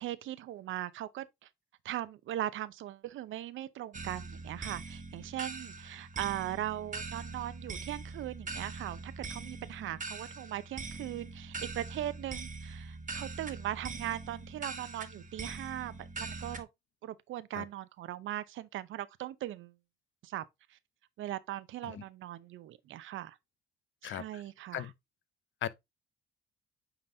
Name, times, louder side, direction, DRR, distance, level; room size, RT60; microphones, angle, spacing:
voice 1, 0.0-1.5 1.8-16.7 17.0-19.7 20.2-20.4 20.7-20.8 21.2-23.4 24.0-24.9, right 13 dB, 80° right, 0.7 m, -39 dB
sound 1, 3.9-16.6, right 4 dB, 40° right, 1.3 m, -42 dB
voice 2, 24.0-24.4 24.7-24.9 25.6-25.7, left 11 dB, 70° left, 0.7 m, -37 dB
8.8 x 3.9 x 2.7 m
cardioid pair, 90°, 20 cm